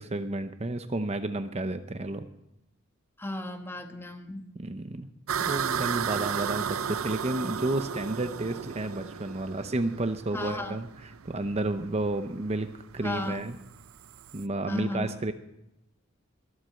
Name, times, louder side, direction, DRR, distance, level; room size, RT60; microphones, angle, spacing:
voice 1, 0.0-2.3 4.6-5.1 5.4-12.7 12.9-13.6 14.3-15.3, right 2 dB, 30° right, 9 dB, 0.8 m, -31 dB
voice 2, 3.2-4.5 10.3-10.8 13.0-13.4 14.7-15.1, left 1 dB, 10° left, 5 dB, 1.4 m, -34 dB
sound 1, 5.3-14.4, right 7 dB, 90° right, 0.5 m, -34 dB
22.5 x 8.2 x 7.7 m, 0.88 s
head